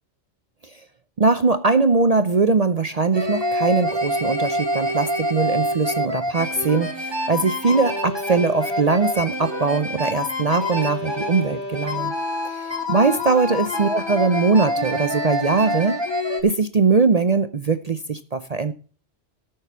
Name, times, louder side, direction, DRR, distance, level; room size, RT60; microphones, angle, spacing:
voice 1, 1.2-12.1 12.5-16.0 16.4-18.7, right 4 dB, 40° right, 11 dB, 0.7 m, -21 dB
sound 1, 3.1-16.4, left 1 dB, 20° right, 2.3 m, -26 dB
13.5 x 6.7 x 5.4 m, 0.38 s
omnidirectional pair, 1.2 m